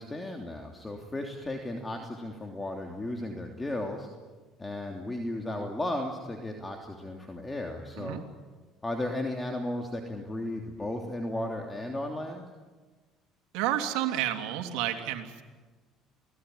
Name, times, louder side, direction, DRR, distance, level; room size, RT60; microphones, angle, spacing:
voice 1, 0.0-4.1 4.6-8.2 8.8-12.4, left 1 dB, 15° left, 2 dB, 3.1 m, -35 dB
voice 2, 13.5-15.4, right 12 dB, 80° right, 4 dB, 3.1 m, -30 dB
28.5 x 19.0 x 9.6 m, 1.3 s
supercardioid pair, 95°, 0 cm